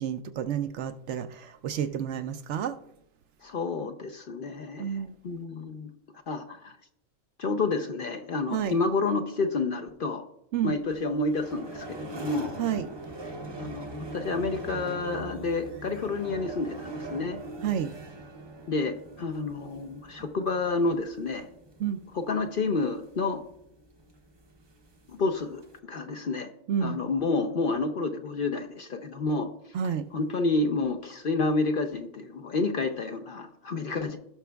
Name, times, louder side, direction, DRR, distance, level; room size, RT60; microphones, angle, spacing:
voice 1, 0.0-2.8 4.8-5.2 8.5-8.8 10.5-10.7 12.6-12.9 17.6-17.9 21.8-22.0 26.7-27.0 29.7-30.0, right 8 dB, 70° right, 10 dB, 0.8 m, -30 dB
voice 2, 3.4-5.0 5.2-5.9 6.3-6.8 7.4-10.2 10.6-12.6 13.6-17.4 18.7-21.5 22.1-23.4 25.1-25.6 25.9-26.5 26.8-29.5 30.1-34.2, left 3 dB, 55° left, 5 dB, 0.7 m, -29 dB
sound 1, 10.9-25.8, right 2 dB, 25° right, 0.6 m, -42 dB
16.5 x 6.1 x 2.3 m, 0.75 s
omnidirectional pair, 1.3 m